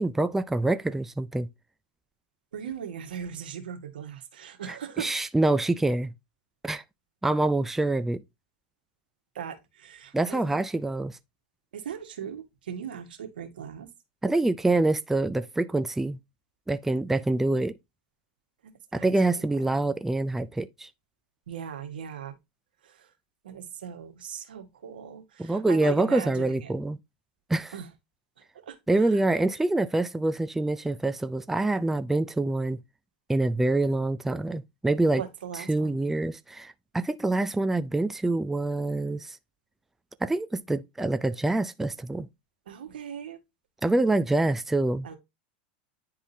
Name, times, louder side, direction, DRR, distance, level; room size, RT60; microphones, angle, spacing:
voice 1, 0.0-1.5 5.0-6.1 6.6-6.8 7.2-8.2 10.1-11.2 14.2-16.2 16.7-17.8 18.9-20.9 25.4-27.0 27.5-27.7 28.9-32.8 33.3-35.2 35.7-39.4 40.2-42.3 43.8-45.1, right 2 dB, 5° right, 0.4 m, -26 dB
voice 2, 2.5-5.1 9.3-10.6 11.7-13.9 18.6-19.5 21.5-22.3 22.8-23.1 23.4-26.7 27.7-27.9 28.6-29.2 35.2-36.0 42.7-43.4 45.0-45.2, right 8 dB, 90° right, 1.6 m, -39 dB
10.0 x 3.7 x 2.7 m
supercardioid pair, 120°, 5 cm